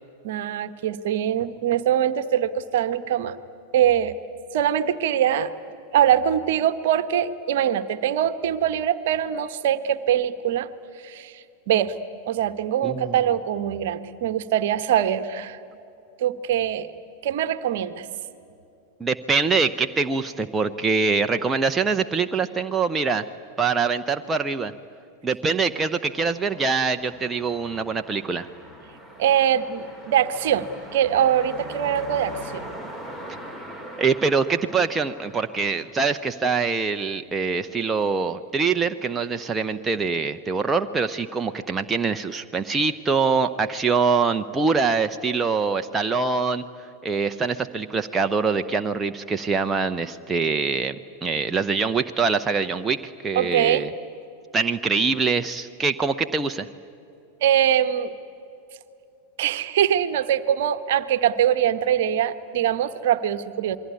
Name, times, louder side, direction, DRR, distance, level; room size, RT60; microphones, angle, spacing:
voice 1, 0.2-3.4 3.7-4.1 4.5-5.5 5.9-10.7 11.0-11.9 12.3-15.6 16.2-16.9 17.2-18.1 29.2-32.7 53.3-53.9 57.4-58.1 59.4-63.8, right 10 dB, 55° right, 12 dB, 1.1 m, -23 dB
voice 2, 12.8-13.2 19.0-23.3 23.6-24.7 25.2-28.5 34.0-46.6 47.0-53.9 54.5-56.7, right 4 dB, 15° right, 6 dB, 0.8 m, -24 dB
sound 1, 26.1-36.4, equal, 10° left, 3.2 m, -41 dB
28.0 x 22.5 x 9.5 m, 2.7 s
figure-of-eight pair, 90°, 0 cm